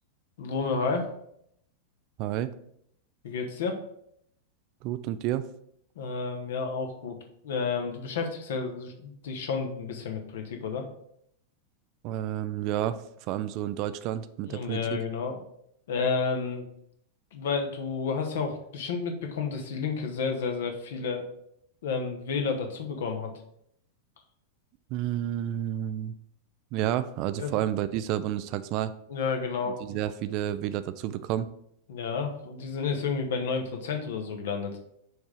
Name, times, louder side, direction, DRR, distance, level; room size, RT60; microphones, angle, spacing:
voice 1, 0.4-1.1 3.2-3.8 6.0-7.1 7.4-10.8 14.5-15.4 15.9-16.7 17.3-21.2 21.8-23.3 27.4-27.6 29.1-30.0 31.9-34.8, left 5 dB, 60° left, 4 dB, 1.0 m, -31 dB
voice 2, 2.2-2.5 4.8-5.5 12.0-14.8 24.9-26.1 26.7-28.9 29.8-31.5, right 12 dB, 40° right, 13 dB, 0.3 m, -30 dB
6.1 x 3.6 x 4.8 m, 0.73 s
figure-of-eight pair, 90°, 0 cm